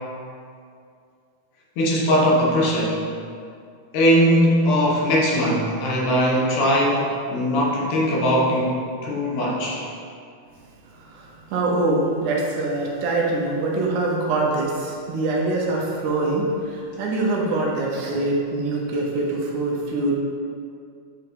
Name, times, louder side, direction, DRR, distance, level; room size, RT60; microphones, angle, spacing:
voice 1, 1.8-3.0 3.9-9.8, equal, 85° left, -3 dB, 2.6 m, -20 dB
voice 2, 10.9-20.1, right 2 dB, 75° right, -2 dB, 2.2 m, -24 dB
8.6 x 4.6 x 3.0 m, 2.3 s
omnidirectional pair, 3.7 m